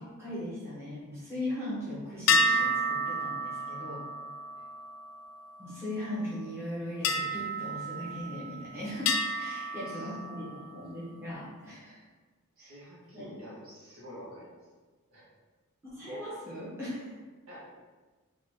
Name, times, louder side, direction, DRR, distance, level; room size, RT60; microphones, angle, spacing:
voice 1, 0.0-4.1 5.6-12.0 12.6-12.7 13.1-13.3 15.8-17.1, left 1 dB, 10° right, -10 dB, 1.0 m, -39 dB
metal impact echo, 2.3-6.0 7.0-8.6 9.1-10.7, left 1 dB, 65° left, 0.3 m, -31 dB
voice 2, 9.6-10.1 12.6-14.6 15.1-15.3 17.5-17.7, equal, 65° right, -7 dB, 1.3 m, -49 dB
4.0 x 2.4 x 2.8 m, 1.3 s
head